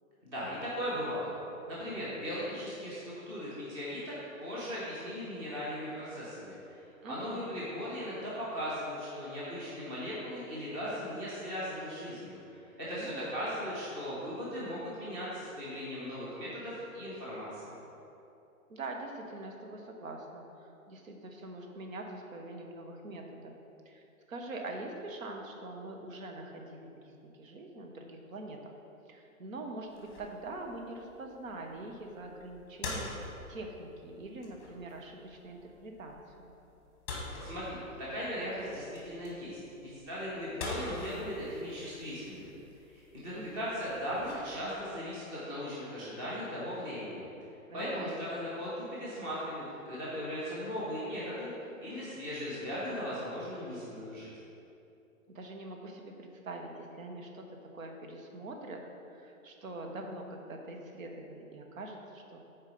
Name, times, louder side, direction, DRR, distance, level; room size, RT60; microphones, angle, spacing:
voice 1, 0.2-1.3 1.7-17.8 37.4-42.6 42.9-47.3 47.7-54.3, equal, 15° right, -8 dB, 0.9 m, -38 dB
voice 2, 7.0-7.5 12.9-13.3 18.7-23.5 23.9-24.0 24.3-28.7 29.1-36.2 43.3-43.7 47.7-48.2 55.3-57.4 57.7-58.8 59.1-62.4, right 2 dB, 70° right, 2 dB, 1.1 m, -44 dB
sound 1, 29.9-45.0, left 2 dB, 20° left, 1.1 m, -45 dB
6.5 x 4.5 x 5.3 m, 2.9 s
hypercardioid pair, 165°, 42 cm